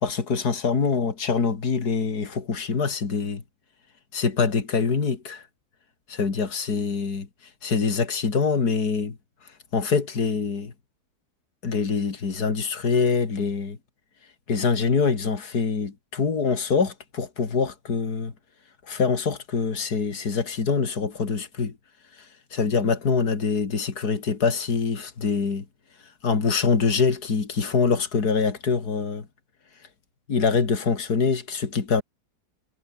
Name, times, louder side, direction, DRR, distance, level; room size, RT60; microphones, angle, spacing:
voice 1, 0.0-3.4 4.1-5.4 6.1-7.3 7.6-9.2 9.7-10.7 11.6-13.8 14.5-18.3 18.9-21.7 22.2-25.6 26.2-29.3 30.3-32.0, left 5 dB, 75° left, 3.1 m, -24 dB
omnidirectional pair, 1.7 m